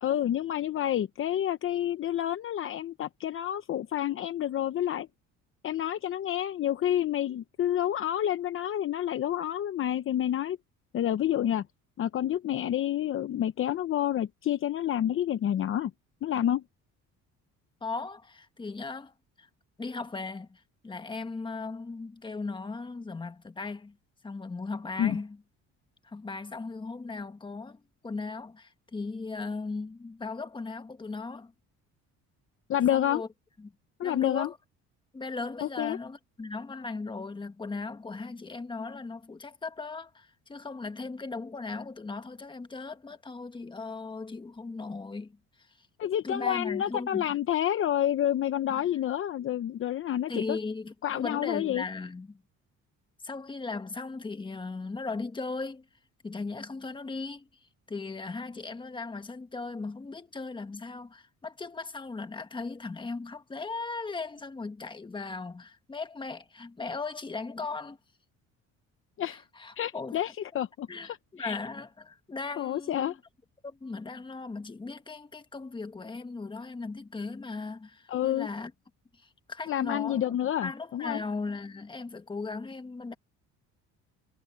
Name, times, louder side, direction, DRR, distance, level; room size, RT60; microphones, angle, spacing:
voice 1, 0.0-5.1 5.6-10.6 10.9-11.6 12.0-15.9 16.2-16.6 25.0-25.2 32.7-33.2 34.0-34.5 35.6-36.0 46.0-50.6 51.0-51.8 69.2-69.4 69.8-71.6 72.6-73.2 78.1-78.5 79.7-81.2, left 11 dB, 45° left, 0.8 m, -29 dB
voice 2, 17.8-19.5 19.8-24.0 24.2-25.4 26.0-31.5 32.9-33.3 33.6-33.7 34.0-34.6 35.1-45.9 46.2-47.4 48.7-48.8 50.3-52.4 53.2-55.9 56.2-68.0 69.2-70.2 70.9-73.2 73.6-78.7 79.1-83.1, left 3 dB, 15° left, 1.6 m, -38 dB
cardioid pair, 130°, 30 cm